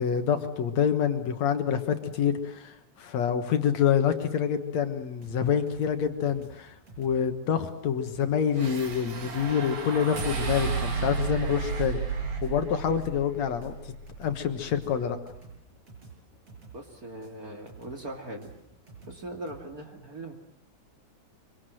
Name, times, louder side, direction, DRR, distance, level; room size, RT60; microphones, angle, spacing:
voice 1, 0.0-12.0 12.4-13.7 14.2-15.2, left 8 dB, 65° left, 8 dB, 2.6 m, -27 dB
shark is near, 5.2-19.6, right 4 dB, 50° right, 8.0 m, -50 dB
sound 1, 8.5-14.9, right 5 dB, 75° right, 4.3 m, -33 dB
voice 2, 16.7-18.5 19.1-20.3, right 1 dB, 30° right, 3 dB, 2.5 m, -40 dB
25.0 x 24.5 x 7.8 m, 0.77 s
omnidirectional pair, 3.4 m